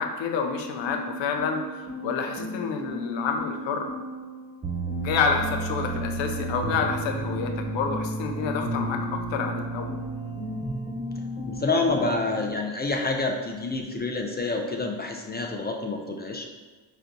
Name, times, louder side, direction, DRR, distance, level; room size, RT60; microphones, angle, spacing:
voice 1, 0.0-3.9 5.0-10.0, left 5 dB, 70° left, 4 dB, 0.6 m, -28 dB
sound 1, 0.8-12.5, right 1 dB, 20° right, 1.0 m, -33 dB
voice 2, 11.5-16.4, left 3 dB, 20° left, 2 dB, 0.4 m, -28 dB
4.4 x 2.3 x 2.5 m, 1.4 s
supercardioid pair, 45°, 46 cm